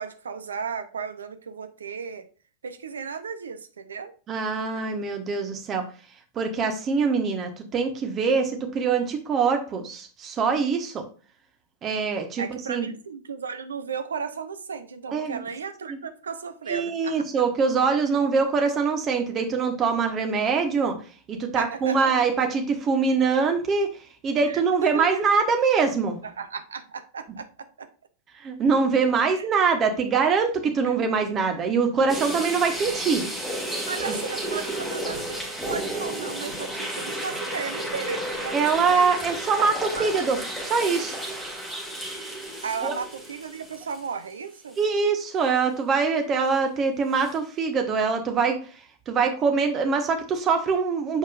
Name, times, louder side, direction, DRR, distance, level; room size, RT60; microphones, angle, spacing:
voice 1, 0.0-2.3 2.6-4.1 12.4-17.2 21.5-22.1 24.4-25.2 26.2-27.5 27.8-27.9 29.3-29.5 30.9-31.3 33.9-39.1 39.9-40.2 42.6-44.8, right 6 dB, 70° right, 9 dB, 0.8 m, -35 dB
voice 2, 4.3-5.8 6.3-11.0 11.8-12.9 15.1-15.4 15.9-16.0 16.7-20.9 21.3-23.9 24.2-26.2 28.4-33.2 38.5-40.4 40.6-41.2 42.8-42.9 44.8-48.6 49.1-51.2, right 5 dB, 30° right, 5 dB, 1.5 m, -23 dB
sound 1, 32.1-44.3 44.7-44.8 47.2-47.3, right 1 dB, 5° right, 2.3 m, -32 dB
7.2 x 5.1 x 2.5 m, 0.38 s
figure-of-eight pair, 90°, 0 cm